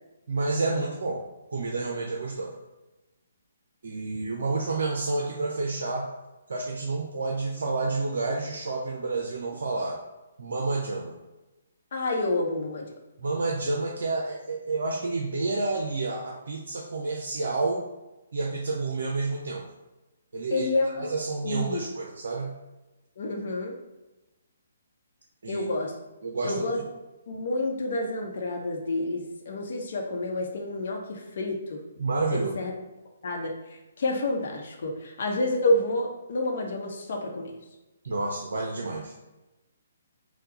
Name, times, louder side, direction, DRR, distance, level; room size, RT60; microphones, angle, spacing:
voice 1, 0.3-1.2 1.5-2.5 3.8-6.1 6.5-10.0 10.4-11.2 13.2-17.8 18.3-19.6 20.3-22.5 25.4-25.6 26.2-26.6 32.0-32.5 38.0-39.1, right 3 dB, 60° right, 0 dB, 0.6 m, -29 dB
voice 2, 11.9-12.9 20.5-21.1 21.4-21.8 23.2-23.7 25.5-25.9 26.4-26.8 27.3-31.8 32.3-32.7 33.2-33.5 34.0-37.5, left 2 dB, 55° left, 1 dB, 0.9 m, -29 dB
4.4 x 2.3 x 4.1 m, 1.0 s
figure-of-eight pair, 135°, 0 cm